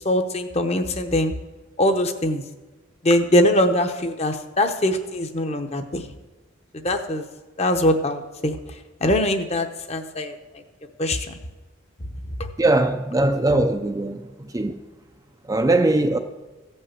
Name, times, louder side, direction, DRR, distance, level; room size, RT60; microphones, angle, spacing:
voice 1, 0.0-1.3 1.8-2.4 3.0-6.0 6.8-7.2 7.6-8.6 9.0-10.3 11.0-11.4 13.5-13.7, left 1 dB, 30° left, 0.8 m, -22 dB
voice 2, 12.6-14.2 14.5-14.7 15.5-16.2, right 2 dB, 15° right, 0.4 m, -20 dB
15.0 x 5.5 x 7.5 m
head